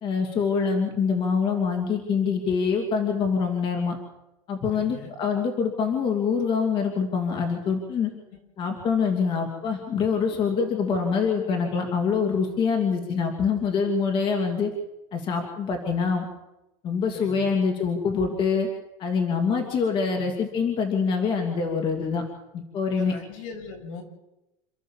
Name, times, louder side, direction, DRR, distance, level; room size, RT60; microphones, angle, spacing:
voice 1, 0.0-4.0 4.5-8.1 8.6-14.7 15.1-16.2 16.8-18.7 19.0-22.2 22.5-23.1, left 5 dB, 30° left, 3 dB, 2.7 m, -25 dB
voice 2, 4.7-5.1 17.1-17.6 19.6-19.7 20.2-20.4 23.0-24.0, left 4 dB, 70° left, 3 dB, 6.4 m, -40 dB
28.5 x 13.0 x 7.3 m, 0.94 s
supercardioid pair, 170°, 17 cm